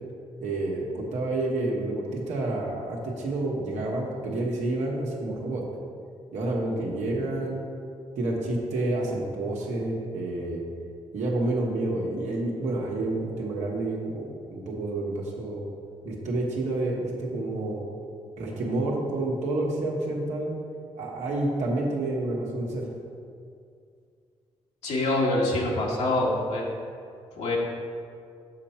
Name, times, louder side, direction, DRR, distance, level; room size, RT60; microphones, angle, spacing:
voice 1, 0.4-5.6 6.3-7.6 8.2-10.6 11.1-15.7 16.0-17.8 18.4-20.5 21.0-22.9, right 2 dB, 85° right, -2 dB, 1.5 m, -29 dB
voice 2, 24.8-26.6 27.4-27.6, left 2 dB, 85° left, -3 dB, 1.4 m, -25 dB
7.2 x 4.4 x 5.7 m, 2.3 s
cardioid pair, 75°, 12 cm